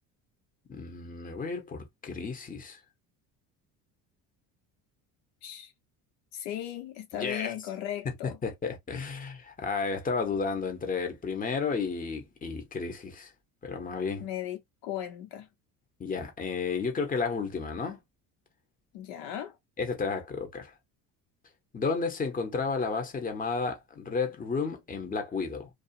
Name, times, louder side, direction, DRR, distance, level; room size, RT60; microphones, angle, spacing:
voice 1, 0.7-2.8 7.2-7.5 8.0-13.3 13.6-14.3 16.0-18.0 19.8-20.7 21.7-25.7, left 4 dB, 20° left, 0.9 m, -32 dB
voice 2, 5.4-5.7 6.3-8.4 14.2-15.5 18.9-19.6, left 11 dB, 85° left, 1.0 m, -37 dB
2.4 x 2.3 x 2.6 m
supercardioid pair, 95°, 40 cm